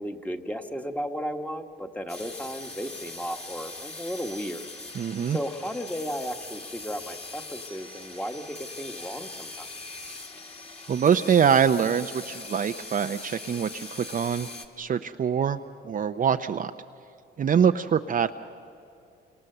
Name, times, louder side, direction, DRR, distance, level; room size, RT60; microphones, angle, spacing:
voice 1, 0.0-4.7 5.0-9.7, equal, 5° left, 5 dB, 1.4 m, -35 dB
sound 1, 2.1-14.7, left 3 dB, 30° left, 2.1 m, -41 dB
voice 2, 5.0-5.4 10.9-14.5 14.8-16.7 17.4-18.3, right 7 dB, 45° right, 8 dB, 0.6 m, -24 dB
29.5 x 26.0 x 6.8 m, 2.5 s
cardioid pair, 90°, 20 cm